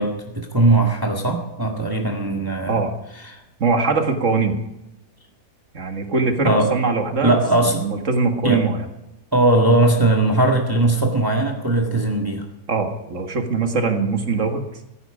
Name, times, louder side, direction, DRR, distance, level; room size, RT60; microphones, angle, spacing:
voice 1, 0.0-2.8 3.3-3.4 6.4-6.7 7.2-7.8 8.4-8.6 9.3-12.4, right 2 dB, 15° right, 1 dB, 1.8 m, -19 dB
voice 2, 3.6-4.6 5.7-8.9 12.7-14.7, right 4 dB, 55° right, 5 dB, 2.1 m, -22 dB
15.5 x 14.5 x 5.0 m, 0.90 s
omnidirectional pair, 1.6 m